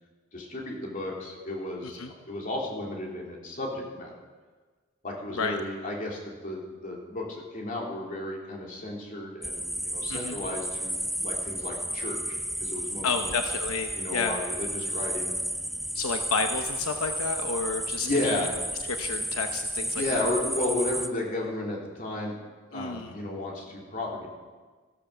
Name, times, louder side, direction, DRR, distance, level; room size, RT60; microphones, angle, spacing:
voice 1, 0.3-4.1 5.0-13.3 14.0-15.3 18.0-18.6 19.9-22.4 22.7-24.3, left 1 dB, 40° left, -2 dB, 3.1 m, -33 dB
sound 1, 9.4-21.1, right 1 dB, ahead, 0.4 m, -32 dB
voice 2, 13.0-14.4 15.9-18.5 18.9-20.3 22.7-23.1, left 4 dB, 85° left, 6 dB, 0.9 m, -31 dB
14.0 x 12.0 x 6.7 m, 1.4 s
head